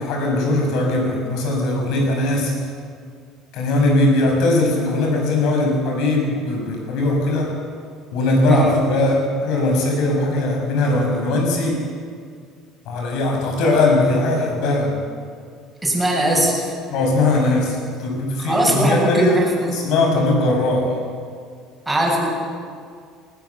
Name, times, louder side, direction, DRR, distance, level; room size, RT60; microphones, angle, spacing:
voice 1, 0.0-2.5 3.5-7.5 8.1-11.8 12.9-15.0 16.3-16.5 16.9-19.4 19.7-20.9, left 2 dB, 65° left, 1 dB, 6.6 m, -19 dB
voice 2, 15.8-16.5 18.4-19.8 21.9-22.3, right 1 dB, 5° right, -3 dB, 7.0 m, -20 dB
20.0 x 19.5 x 7.3 m, 2.1 s
cardioid pair, 130°, 0 cm